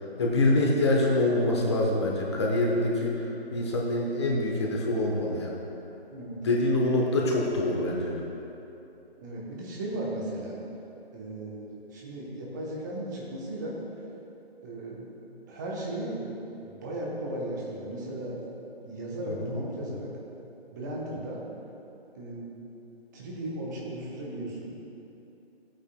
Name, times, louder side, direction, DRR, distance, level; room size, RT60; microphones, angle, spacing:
voice 1, 0.2-5.5 6.4-8.2 19.3-19.5, left 1 dB, 25° left, -2 dB, 1.0 m, -25 dB
voice 2, 6.1-6.4 9.2-10.6 11.1-13.8 14.6-15.1 15.4-16.3 16.6-18.4 18.8-20.1 20.7-21.4 22.1-22.5 23.1-24.7, right 1 dB, 20° right, -4 dB, 1.0 m, -36 dB
15.0 x 8.8 x 2.2 m, 2.9 s
figure-of-eight pair, 150°, 31 cm